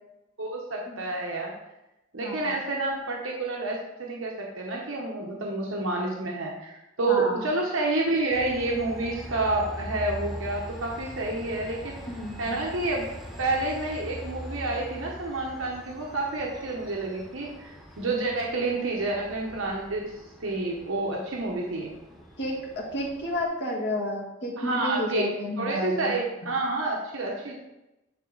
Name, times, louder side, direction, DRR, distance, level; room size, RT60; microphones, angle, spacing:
voice 1, 0.4-1.5 2.1-12.0 12.4-13.1 13.4-20.1 20.4-21.9 24.6-25.3 25.6-27.5, right 2 dB, 90° right, -1 dB, 1.0 m, -29 dB
voice 2, 2.2-2.5 7.1-7.5 12.1-12.6 22.4-22.6 22.9-26.1 26.4-26.5, left 1 dB, 60° left, -2 dB, 1.6 m, -31 dB
Train, 8.3-23.4, equal, ahead, 0.9 m, -42 dB
9.1 x 3.8 x 3.9 m, 0.94 s
head